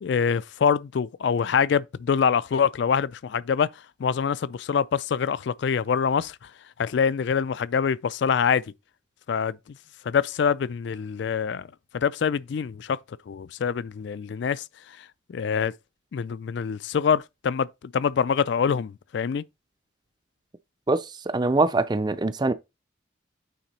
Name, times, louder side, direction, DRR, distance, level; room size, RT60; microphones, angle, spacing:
voice 1, 0.0-3.7 4.0-6.4 6.8-8.6 9.3-9.6 10.1-11.7 11.9-13.0 13.3-14.6 15.0-15.7 16.1-17.7 17.9-19.4, left 6 dB, 60° left, 0.3 m, -25 dB
voice 2, 20.9-22.5, right 2 dB, 20° right, 0.4 m, -23 dB
9.0 x 3.7 x 4.1 m
head